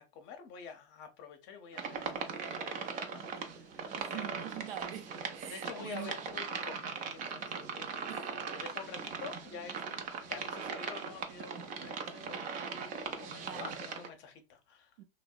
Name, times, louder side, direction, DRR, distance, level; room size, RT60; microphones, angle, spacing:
voice 1, 0.0-4.3 5.5-8.1 8.5-14.9, left 6 dB, 40° left, 0.7 m, -48 dB
sound 1, 1.7-14.1, right 5 dB, 30° right, 0.4 m, -40 dB
voice 2, 4.0-6.2 8.1-8.4 13.4-13.8 15.0-15.1, right 11 dB, 75° right, 0.6 m, -44 dB
2.7 x 2.1 x 2.3 m
hypercardioid pair, 115°, 29 cm